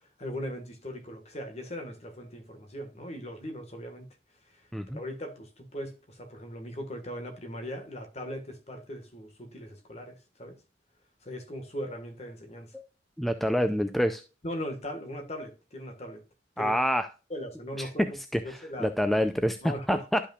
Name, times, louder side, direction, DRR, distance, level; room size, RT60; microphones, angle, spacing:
voice 1, 0.0-4.1 4.9-10.6 11.2-12.7 14.4-16.2 16.6-16.7 17.3-18.1 18.4-18.9 19.6-20.0, equal, 40° left, 1.6 m, -39 dB
voice 2, 13.2-14.2 16.6-17.1 17.8-17.9 18.3-18.4 18.8-20.2, equal, ahead, 0.4 m, -26 dB
12.0 x 5.6 x 2.4 m
head